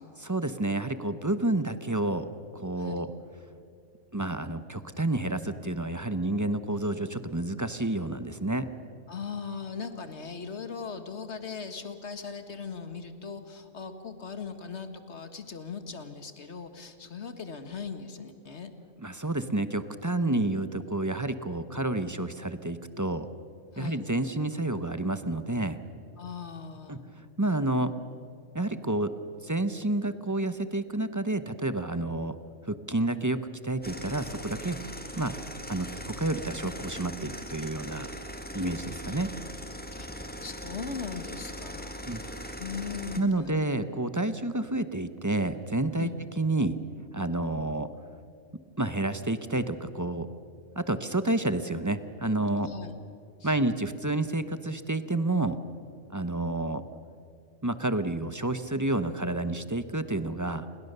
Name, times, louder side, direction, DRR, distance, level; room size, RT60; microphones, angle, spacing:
voice 1, 0.2-2.3 2.5-3.1 4.1-8.7 19.0-23.3 23.8-25.8 26.9-27.9 28.5-29.1 29.4-32.4 32.6-34.8 35.2-35.4 35.7-38.1 38.5-39.3 42.1-42.5 43.2-46.1 46.4-46.8 47.1-47.9 48.8-50.3 50.8-52.7 53.4-55.6 56.1-56.8 57.6-60.7, right 2 dB, 15° right, 11 dB, 0.7 m, -29 dB
voice 2, 2.8-3.1 9.1-18.7 23.7-24.0 26.2-27.0 40.0-40.1 40.4-43.6 46.0-46.2 52.6-52.9 53.4-53.6, left 5 dB, 50° left, 9 dB, 2.0 m, -39 dB
sound 1, 33.8-43.2, equal, 5° left, 1.8 m, -40 dB
29.5 x 22.0 x 6.8 m, 2.4 s
omnidirectional pair, 1.5 m